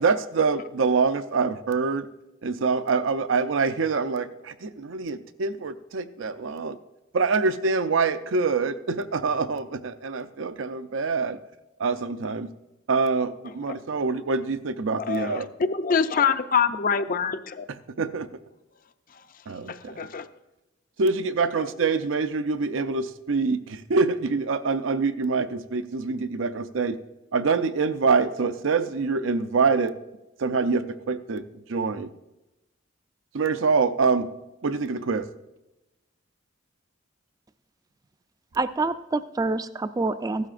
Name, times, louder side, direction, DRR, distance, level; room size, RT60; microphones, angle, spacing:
voice 1, 0.0-2.1 2.4-6.8 7.1-11.4 11.8-12.5 12.9-15.5 18.0-18.3 19.5-20.0 21.0-27.0 27.3-29.9 30.4-31.4 31.7-32.1 33.3-34.3 34.6-35.3, right 4 dB, 75° right, 11 dB, 0.5 m, -25 dB
voice 2, 15.1-15.4 15.7-17.7 19.7-20.3, left 6 dB, 45° left, 11 dB, 0.5 m, -25 dB
voice 3, 38.5-40.5, right 3 dB, 20° right, 12 dB, 0.4 m, -27 dB
15.5 x 12.5 x 2.5 m, 0.99 s
head